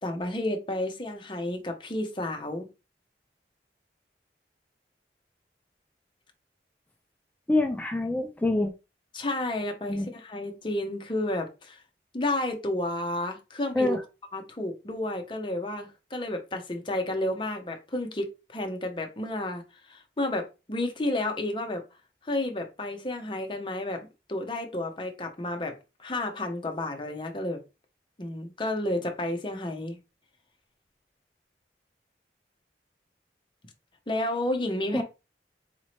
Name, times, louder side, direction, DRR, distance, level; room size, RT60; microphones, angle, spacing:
voice 1, 0.0-2.7 9.1-11.8 12.1-14.0 14.3-21.8 22.2-27.6 28.2-30.0 34.1-35.0, left 1 dB, 30° left, 0.7 m, -31 dB
voice 2, 7.5-8.7 9.9-10.1 13.8-14.0 34.9-35.0, left 2 dB, 10° left, 0.3 m, -25 dB
4.1 x 2.7 x 3.1 m
head